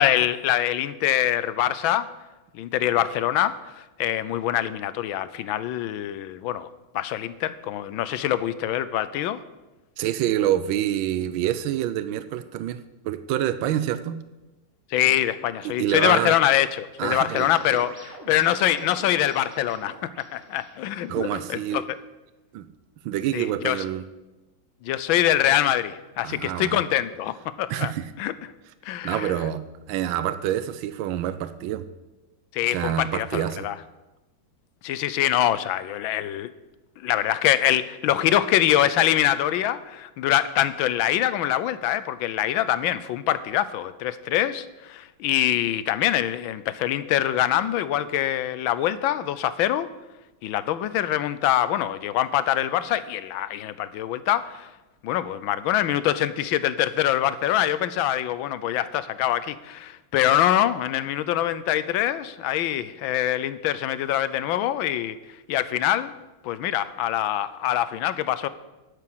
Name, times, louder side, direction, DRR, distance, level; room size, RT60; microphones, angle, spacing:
voice 1, 0.0-2.1 2.5-6.7 6.9-9.4 14.9-20.0 20.3-21.8 23.3-23.8 24.8-27.9 28.2-28.3 28.8-29.3 32.5-33.7 34.8-36.5 37.0-49.9 50.4-54.7 55.0-65.2 65.5-66.1 66.4-68.5, left 12 dB, 85° left, 15 dB, 1.4 m, -24 dB
voice 2, 10.0-12.8 13.0-14.2 15.6-16.4 17.0-17.8 21.1-21.8 22.5-22.7 23.0-24.1 26.2-26.8 27.7-28.1 29.0-29.6 29.9-31.8 32.6-33.7, right 11 dB, 85° right, 12 dB, 1.4 m, -27 dB
sound 1, 17.0-22.0, right 1 dB, 35° right, 2.9 m, -45 dB
9.8 x 8.5 x 7.8 m, 1.1 s
omnidirectional pair, 2.1 m